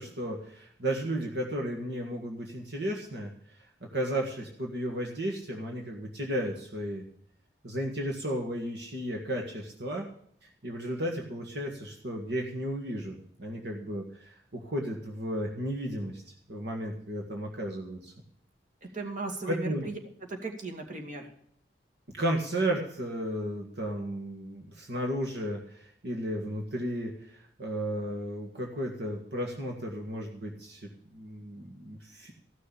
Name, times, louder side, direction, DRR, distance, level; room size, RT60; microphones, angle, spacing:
voice 1, 0.0-3.3 3.6-3.7 3.9-7.0 7.6-10.1 10.4-16.2 16.5-18.1 19.4-19.9 22.2-32.3, right 1 dB, 65° right, 1 dB, 1.9 m, -34 dB
voice 2, 18.8-20.0 20.3-21.3, right 3 dB, 45° right, 2 dB, 2.4 m, -37 dB
15.0 x 6.6 x 8.5 m, 0.65 s
head